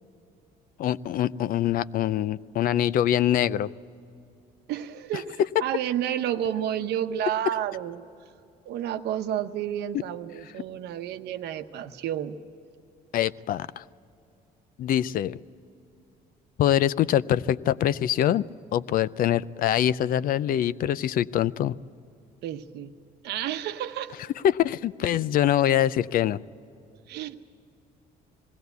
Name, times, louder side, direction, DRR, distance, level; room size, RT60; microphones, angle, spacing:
voice 1, 0.8-3.7 13.1-13.8 14.8-15.4 16.6-18.5 18.7-21.8 24.4-26.4, left 11 dB, 55° left, 18 dB, 0.5 m, -24 dB
voice 2, 4.7-8.0 8.7-12.4 22.4-22.9 23.2-24.2 27.1-27.4, right 10 dB, 75° right, 9 dB, 0.9 m, -30 dB
20.5 x 16.5 x 8.1 m, 2.6 s
cardioid pair, 110°, 17 cm